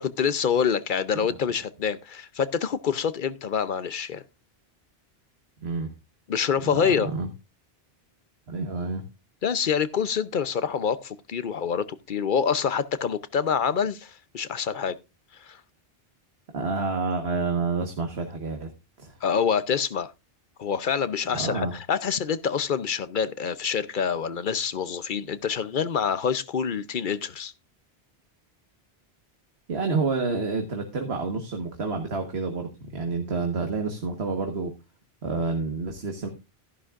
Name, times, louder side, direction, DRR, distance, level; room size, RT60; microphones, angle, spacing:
voice 1, 0.0-4.2 6.3-7.1 9.4-15.0 15.4-15.6 19.2-20.1 20.6-27.5, left 7 dB, 55° left, 0.8 m, -26 dB
voice 2, 5.6-5.9 6.6-7.3 8.5-9.0 16.5-18.7 19.0-19.2 21.3-21.7 29.7-34.7 35.2-36.3, right 4 dB, 90° right, 1.7 m, -29 dB
14.0 x 11.0 x 2.5 m
omnidirectional pair, 1.0 m